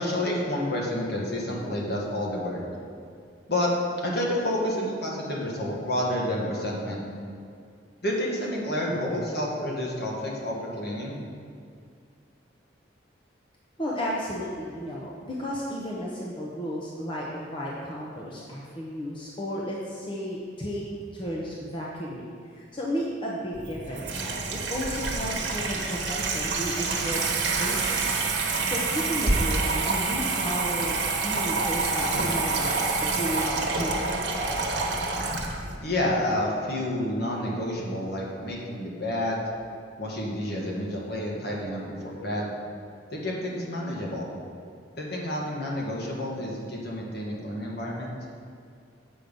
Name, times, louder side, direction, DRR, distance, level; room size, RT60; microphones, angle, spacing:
voice 1, 0.0-2.6 3.5-3.7 4.0-7.0 8.0-11.2 35.8-39.4 40.0-42.5 43.1-44.2 45.0-48.1, left 1 dB, 55° left, -3 dB, 1.5 m, -29 dB
voice 2, 13.8-20.8 21.1-24.4 24.7-28.2 28.6-34.2, equal, 25° left, -4 dB, 0.8 m, -33 dB
Water tap faucet / Sink (filling or washing), 23.5-35.8, right 3 dB, 60° right, 1.1 m, -27 dB
7.8 x 5.6 x 5.3 m, 2.3 s
head